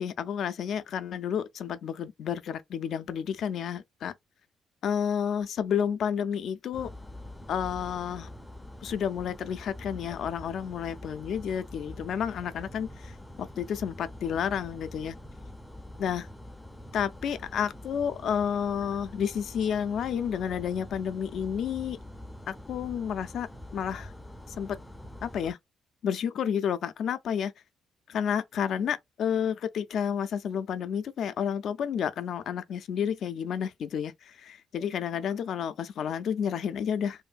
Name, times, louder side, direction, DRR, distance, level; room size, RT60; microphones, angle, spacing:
voice 1, 0.0-4.1 4.8-6.9 7.5-8.3 8.8-15.2 16.0-16.3 16.9-22.0 22.5-23.5 23.7-24.1 24.6-24.8 25.2-25.6 26.0-27.5 28.1-37.2, left 8 dB, 70° left, 0.4 m, -30 dB
sound 1, 6.7-25.5, left 1 dB, 10° left, 0.4 m, -45 dB
2.6 x 2.6 x 2.2 m
cardioid pair, 90°, 0 cm